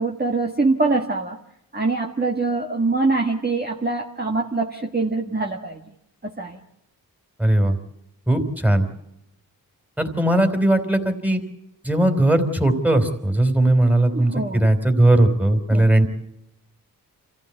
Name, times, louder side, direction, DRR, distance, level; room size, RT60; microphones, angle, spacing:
voice 1, 0.0-1.4 1.7-5.8 6.2-6.6 14.1-14.6 15.7-15.9, right 3 dB, 25° right, 0 dB, 1.8 m, -24 dB
voice 2, 7.4-7.8 8.3-8.8 10.0-11.4 11.8-16.1, right 1 dB, 5° right, 6 dB, 3.6 m, -18 dB
26.5 x 15.0 x 8.3 m, 0.81 s
cardioid pair, 60°, 38 cm